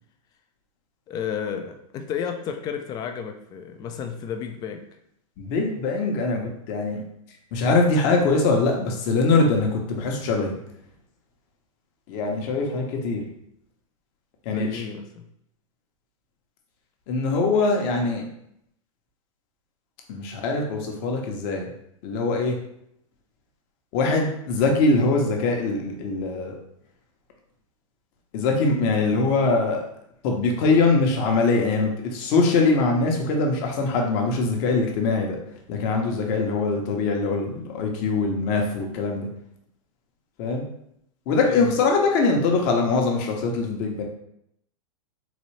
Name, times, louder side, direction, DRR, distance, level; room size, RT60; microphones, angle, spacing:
voice 1, 1.1-4.8 14.5-15.3 41.5-41.7, left 7 dB, 25° left, 6 dB, 0.4 m, -32 dB
voice 2, 5.4-6.4 6.7-7.0 7.5-10.6 12.1-13.2 14.4-14.8 17.1-18.3 20.1-21.7 22.0-22.6 23.9-26.6 28.3-29.8 30.2-35.4 35.7-39.3 40.4-40.6 41.3-44.0, left 3 dB, 45° left, 1 dB, 0.9 m, -22 dB
4.0 x 2.7 x 3.1 m, 0.76 s
hypercardioid pair, 140°, 18 cm